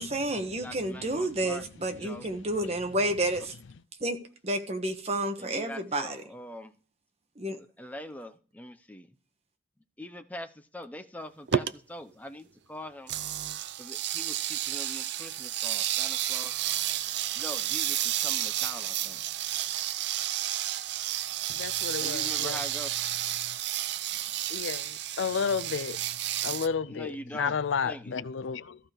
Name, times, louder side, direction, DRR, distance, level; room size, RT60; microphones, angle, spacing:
voice 1, 0.0-3.6 4.0-4.2 4.4-6.2 7.3-7.6, right 1 dB, 35° right, 1.2 m, -30 dB
voice 2, 0.6-1.6 2.0-2.2 5.4-6.7 7.8-9.1 10.0-13.1 13.8-16.5 17.4-19.2 22.0-22.9 26.5-26.6 26.9-27.6 27.8-28.2, left 1 dB, 10° left, 0.7 m, -42 dB
sound 1, 11.5-11.7 13.1-26.7, right 12 dB, 60° right, 0.5 m, -31 dB
voice 3, 21.6-22.6 24.5-26.0 26.4-28.8, left 6 dB, 80° left, 0.5 m, -32 dB
14.5 x 5.0 x 4.5 m
head